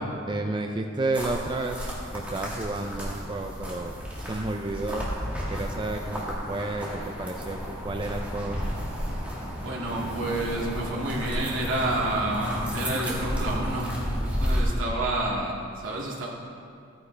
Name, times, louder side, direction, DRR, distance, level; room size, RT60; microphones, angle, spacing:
voice 1, 0.0-1.9 2.1-5.1 5.5-8.6, right 2 dB, 25° right, 3 dB, 0.5 m, -31 dB
sound 1, 1.1-14.6, equal, 5° right, 2.1 m, -32 dB
voice 2, 9.6-13.9 14.4-16.3, right 2 dB, 80° right, -4 dB, 2.3 m, -29 dB
14.5 x 9.6 x 3.4 m, 2.4 s
head